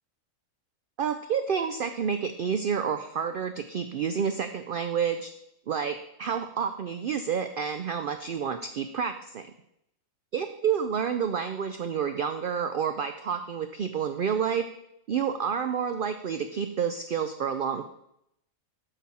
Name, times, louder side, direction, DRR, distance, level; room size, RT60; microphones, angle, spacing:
voice 1, 1.0-5.3 5.7-9.5 10.3-14.6 15.1-17.9, right 7 dB, 75° right, 8 dB, 0.5 m, -29 dB
8.3 x 6.0 x 4.2 m, 0.78 s
omnidirectional pair, 1.4 m